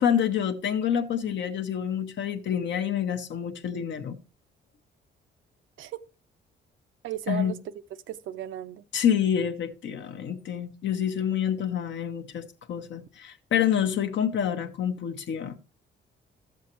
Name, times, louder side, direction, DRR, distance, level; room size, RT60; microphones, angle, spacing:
voice 1, 0.0-4.2 7.3-7.5 8.9-15.6, left 9 dB, 65° left, 1.0 m, -27 dB
voice 2, 7.0-8.8, right 11 dB, 75° right, 0.6 m, -36 dB
12.5 x 7.4 x 3.0 m
cardioid pair, 90°, 20 cm